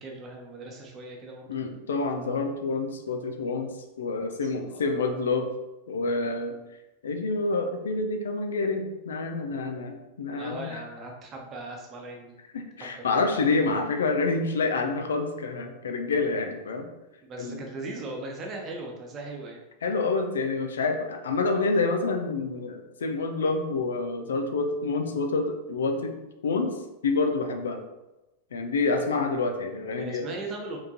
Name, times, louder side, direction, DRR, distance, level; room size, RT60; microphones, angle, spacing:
voice 1, 0.0-1.6 4.2-4.3 4.7-4.9 10.3-12.4 12.8-13.2 17.2-19.6 30.0-30.8, right 2 dB, 30° right, 1 dB, 1.0 m, -39 dB
voice 2, 1.5-3.7 4.0-5.5 5.9-6.6 7.0-10.8 12.5-16.9 17.4-17.6 19.8-26.1 26.4-26.7 27.0-27.8 28.5-30.3, left 3 dB, 65° left, 6 dB, 0.6 m, -27 dB
4.8 x 3.6 x 2.9 m, 1.0 s
figure-of-eight pair, 90°, 0 cm